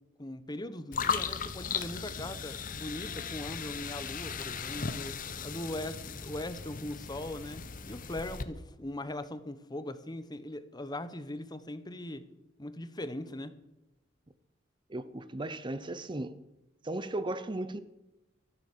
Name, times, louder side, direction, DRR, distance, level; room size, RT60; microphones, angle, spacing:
voice 1, 0.2-5.1 5.4-12.2 12.6-13.6, left 1 dB, 20° left, 0.9 m, -40 dB
sound 1, 0.9-8.4, left 6 dB, 45° left, 1.0 m, -37 dB
voice 2, 14.9-16.4 16.8-17.8, right 2 dB, 25° right, 0.6 m, -36 dB
13.0 x 11.5 x 6.7 m
head